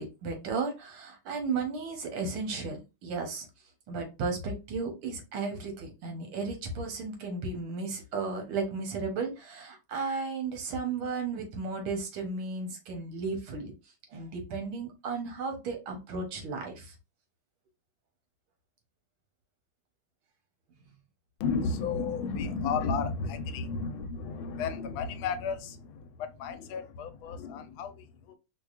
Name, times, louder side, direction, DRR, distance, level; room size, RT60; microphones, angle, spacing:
voice 1, 0.0-3.5 3.9-13.7 14.1-17.0, right 4 dB, 85° right, 1.8 m, -34 dB
voice 2, 21.4-28.4, left 5 dB, 80° left, 1.4 m, -33 dB
4.7 x 2.2 x 2.4 m
omnidirectional pair, 2.2 m